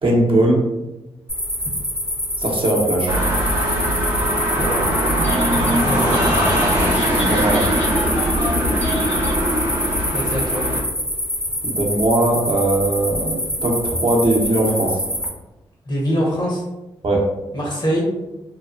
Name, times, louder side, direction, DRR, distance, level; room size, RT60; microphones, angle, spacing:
voice 1, 0.0-0.7 2.4-3.1 7.3-7.7 11.6-15.0 17.0-17.3, right 1 dB, 50° right, -2 dB, 0.8 m, -19 dB
sound 1, 1.3-15.3, equal, 5° left, 0.7 m, -26 dB
sound 2, 3.1-10.8, equal, 90° right, 0.7 m, -20 dB
Telephone, 5.1-5.8 6.1-9.8, left 1 dB, 70° left, 1.1 m, -32 dB
voice 2, 5.9-6.2 10.1-10.6 15.8-16.6 17.5-18.1, equal, 40° left, -2 dB, 1.0 m, -23 dB
2.8 x 2.0 x 2.5 m, 0.99 s
supercardioid pair, 40°, 11 cm